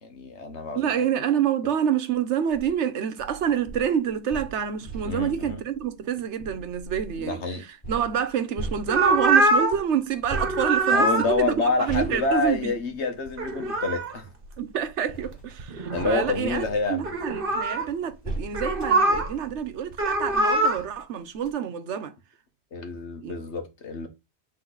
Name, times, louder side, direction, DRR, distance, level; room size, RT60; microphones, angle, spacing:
voice 1, 0.0-1.0 5.0-5.6 7.2-7.6 10.9-14.3 15.9-17.0 22.7-24.1, left 3 dB, 80° left, 1.6 m, -28 dB
voice 2, 0.7-7.4 7.9-12.8 14.6-22.1 23.2-23.3, right 8 dB, 90° right, 1.1 m, -27 dB
sound 1, 2.4-2.7 3.2-7.2 7.8-9.4 10.3-13.7 14.6-20.5 21.0-21.1 21.3-21.5, right 2 dB, 30° left, 5.0 m, -39 dB
sound 2, 8.9-9.8 10.2-11.3 13.3-14.2 15.1-15.2 15.6-16.3 17.0-17.9 18.5-19.3 19.9-20.8, right 2 dB, 55° right, 1.3 m, -23 dB
8.0 x 3.8 x 3.9 m
omnidirectional pair, 1.1 m